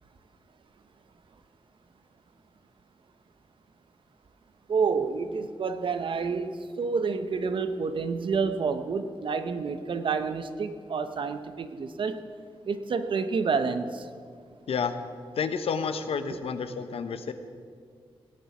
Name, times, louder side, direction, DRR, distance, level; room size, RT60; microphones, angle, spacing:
voice 1, 4.7-12.2 12.7-14.0, right 5 dB, 60° right, 9 dB, 0.8 m, -29 dB
voice 2, 15.4-17.3, left 6 dB, 90° left, 10 dB, 0.9 m, -30 dB
17.5 x 10.0 x 6.0 m, 2.1 s
wide cardioid pair, 175°, 10 cm